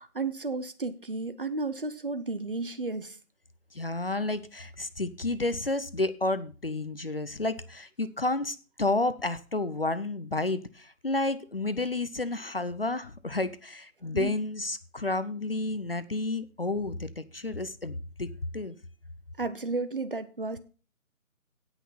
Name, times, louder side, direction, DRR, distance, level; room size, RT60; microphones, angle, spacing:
voice 1, 0.0-3.2 14.1-14.3 19.4-20.6, right 3 dB, 40° right, 11 dB, 0.9 m, -33 dB
voice 2, 3.7-18.3 18.5-18.8, left 2 dB, 45° left, 14 dB, 0.7 m, -31 dB
17.0 x 6.1 x 4.2 m, 0.36 s
figure-of-eight pair, 155°, 42 cm